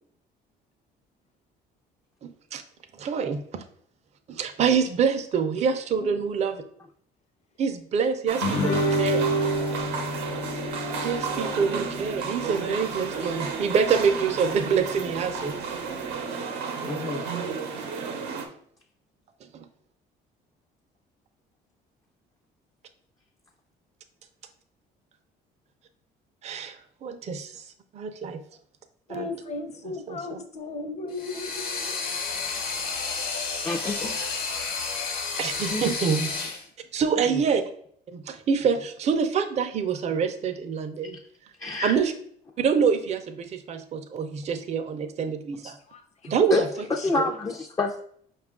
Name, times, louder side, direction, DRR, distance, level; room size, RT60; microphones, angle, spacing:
voice 1, 2.2-2.6 3.0-3.6 4.3-6.6 7.6-9.3 11.0-15.5 16.9-17.0 19.5-19.6 26.4-27.6 27.9-28.4 29.2-29.3 30.1-30.4 35.4-36.3 36.9-37.6 38.1-41.2 41.8-42.1 42.6-45.8 46.3-46.7, right 6 dB, 40° right, 7 dB, 0.5 m, -26 dB
voice 2, 6.0-6.4 15.1-15.2 29.1-32.1 36.3-36.5 45.9-47.6, left 3 dB, 40° left, 6 dB, 0.7 m, -37 dB
sound 1, 8.3-18.5, right 5 dB, 90° right, 0.7 m, -32 dB
Guitar, 8.4-13.5, right 1 dB, 85° left, 0.8 m, -29 dB
voice 3, 16.8-17.2 33.6-34.2 35.7-35.8 41.6-42.0 46.5-48.0, left 3 dB, 20° left, 1 dB, 0.4 m, -27 dB
sound 2, 31.1-36.6, left 4 dB, 60° left, 1.0 m, -31 dB
5.1 x 2.4 x 3.6 m, 0.62 s
cardioid pair, 110°, 17 cm